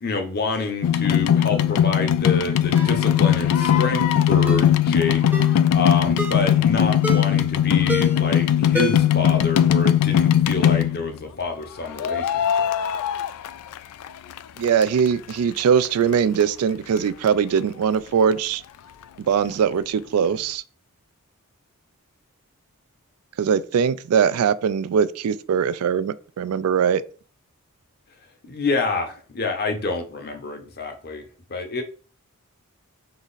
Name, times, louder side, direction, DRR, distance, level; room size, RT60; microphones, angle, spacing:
voice 1, 0.0-5.2 5.7-12.7 28.4-31.2 31.5-31.8, left 3 dB, 45° left, 0.8 m, -27 dB
sound 1, 0.8-11.2 12.0-14.1 14.4-15.3 15.8-15.9 16.1-16.2 16.4-16.5 17.0-17.1 17.3-17.4, left 9 dB, 80° left, 0.3 m, -19 dB
Ringtone, 2.7-3.0 3.6-3.8 4.5-4.7 5.3-5.6 6.2-6.5 7.0-7.4 7.9-8.3 8.7-9.2 9.5-9.6, left 1 dB, 10° right, 0.6 m, -29 dB
voice 2, 14.6-18.6 19.2-20.6 23.4-27.0, right 7 dB, 75° right, 0.3 m, -21 dB
3.9 x 3.0 x 3.9 m
head